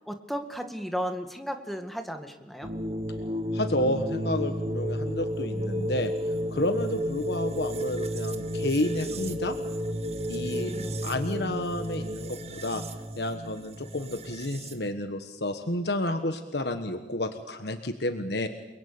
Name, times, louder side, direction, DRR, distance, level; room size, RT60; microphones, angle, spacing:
voice 1, 0.1-2.7 10.5-11.0, equal, ahead, 6 dB, 1.8 m, -35 dB
sound 1, 2.6-14.9, equal, 35° right, 1.4 m, -32 dB
voice 2, 3.5-6.1 6.5-9.6 10.3-10.7 11.0-12.8 13.2-18.5, left 1 dB, 60° left, 8 dB, 1.4 m, -30 dB
29.5 x 21.5 x 8.7 m, 1.2 s
head